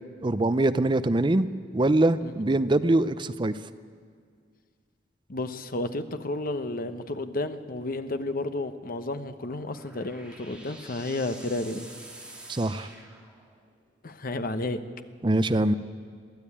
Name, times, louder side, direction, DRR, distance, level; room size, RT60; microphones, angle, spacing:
voice 1, 0.2-1.5 1.7-3.5 12.5-12.9 15.2-15.7, right 2 dB, 25° right, 12 dB, 0.5 m, -23 dB
voice 2, 5.3-11.9 14.0-14.8, left 2 dB, 50° left, 9 dB, 1.0 m, -32 dB
sound 1, 9.3-13.8, right 1 dB, 5° right, 2.6 m, -48 dB
22.5 x 14.0 x 8.6 m, 2.1 s
head